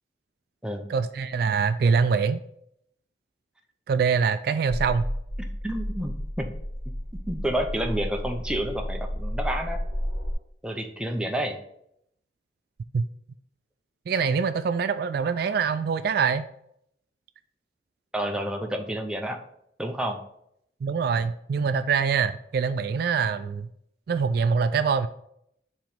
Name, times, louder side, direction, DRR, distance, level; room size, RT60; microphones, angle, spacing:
voice 1, 0.9-2.4 3.9-5.0 12.9-13.1 14.1-16.5 20.8-23.7 24.1-25.1, right 5 dB, 55° right, 12 dB, 0.3 m, -24 dB
sound 1, 4.7-10.3, equal, 35° left, 1.5 m, -32 dB
voice 2, 5.6-6.5 7.3-9.8 10.6-11.6 18.1-19.4 19.8-20.2, right 1 dB, 5° right, 3 dB, 0.6 m, -29 dB
7.4 x 3.1 x 5.2 m, 0.72 s
head